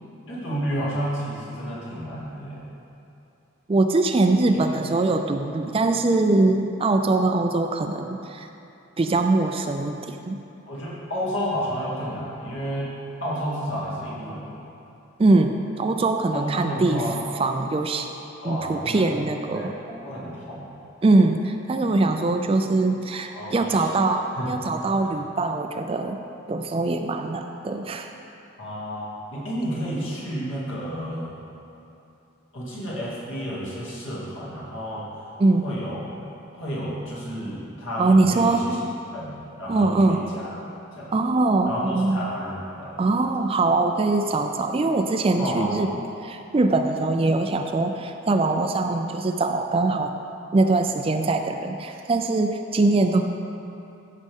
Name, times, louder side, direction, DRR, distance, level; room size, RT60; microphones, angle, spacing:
voice 1, 0.3-2.7 4.7-4.8 10.7-12.9 13.2-14.6 16.3-17.2 18.4-19.2 19.5-20.7 23.3-23.9 24.4-24.5 25.0-25.1 28.6-31.3 32.5-35.1 35.6-36.1 36.5-38.8 39.1-39.3 39.6-40.5 40.9-41.1 41.7-43.0 45.4-45.8, equal, 65° left, -6 dB, 2.4 m, -31 dB
voice 2, 3.7-8.5 9.0-10.4 15.2-17.0 17.4-18.1 18.4-19.8 21.0-26.2 26.5-28.1 35.4-35.6 38.0-38.8 39.7-40.2 41.1-42.3 43.0-45.9 46.2-50.1 50.5-53.2, right 2 dB, 25° right, 6 dB, 0.3 m, -22 dB
14.5 x 6.5 x 3.6 m, 2.8 s
head